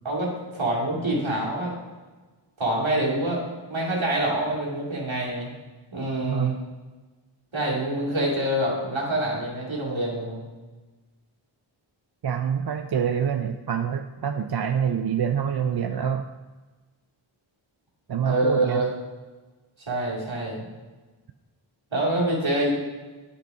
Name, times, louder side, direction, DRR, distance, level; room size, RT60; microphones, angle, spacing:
voice 1, 0.0-1.7 2.6-3.4 3.7-5.5 5.9-6.6 7.5-10.4 18.1-18.9 19.9-20.7 21.9-22.7, right 1 dB, 70° right, -4 dB, 2.5 m, -26 dB
voice 2, 6.3-6.6 12.2-16.2 18.1-18.8, right 7 dB, 55° right, 7 dB, 0.5 m, -26 dB
9.3 x 5.3 x 4.7 m, 1.3 s
wide cardioid pair, 45°, 49 cm